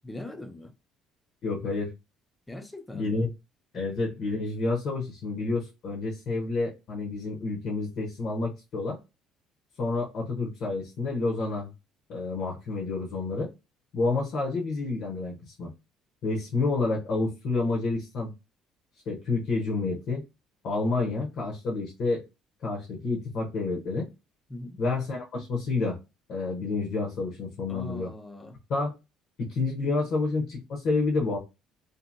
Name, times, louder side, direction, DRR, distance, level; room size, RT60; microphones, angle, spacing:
voice 1, 0.0-0.7 2.5-3.2 3.7-3.8 24.5-24.8 27.7-28.6, left 1 dB, 10° left, 0.4 m, -41 dB
voice 2, 1.4-1.9 2.9-3.3 3.7-9.0 9.8-11.7 12.1-13.5 13.9-15.7 16.2-18.3 19.1-20.2 20.6-22.2 22.6-24.1 24.8-26.0 26.3-28.1 28.7-28.9 29.4-31.4, left 3 dB, 50° left, 0.7 m, -29 dB
2.7 x 2.5 x 2.5 m
cardioid pair, 165°, 0 cm